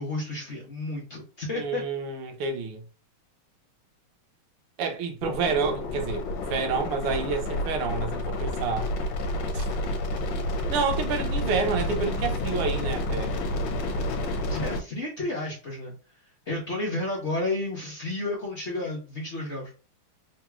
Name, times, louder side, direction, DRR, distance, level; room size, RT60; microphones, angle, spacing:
voice 1, 0.0-1.8 14.5-15.9 16.5-19.7, left 2 dB, 40° left, 1.0 m, -31 dB
voice 2, 1.5-2.8 4.8-6.2 6.5-8.9 9.5-9.6 10.7-13.3, right 5 dB, 85° right, 1.7 m, -29 dB
sound 1, 5.2-14.8, left 1 dB, 70° left, 1.5 m, -29 dB
3.9 x 3.0 x 2.3 m
omnidirectional pair, 2.4 m